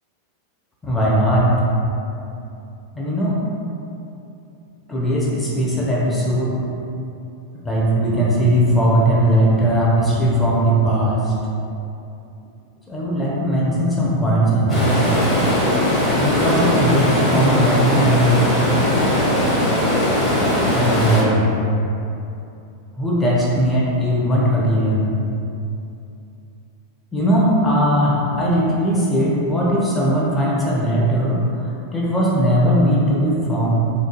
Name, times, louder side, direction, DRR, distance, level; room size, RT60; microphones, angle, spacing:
voice 1, 0.8-1.6 2.9-3.4 4.9-6.6 7.6-11.3 12.9-14.9 16.2-18.6 20.7-21.5 23.0-25.2 27.1-33.8, equal, 10° left, -6 dB, 0.5 m, -19 dB
Stream, 14.7-21.2, left 1 dB, 25° left, 1.0 m, -19 dB
3.5 x 2.2 x 2.9 m, 2.7 s
figure-of-eight pair, 90°, 0 cm